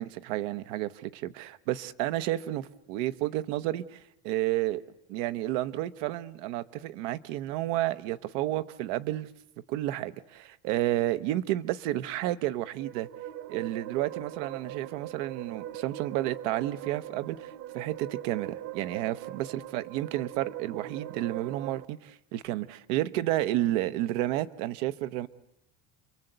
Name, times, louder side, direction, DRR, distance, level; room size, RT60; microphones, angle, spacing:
voice 1, 0.0-4.8 5.1-9.3 9.7-13.1 13.5-25.3, right 15 dB, 85° right, 1.1 m, -31 dB
sound 1, 12.6-21.8, right 12 dB, 55° right, 1.4 m, -41 dB
29.5 x 22.5 x 8.0 m
cardioid pair, 145°, 36 cm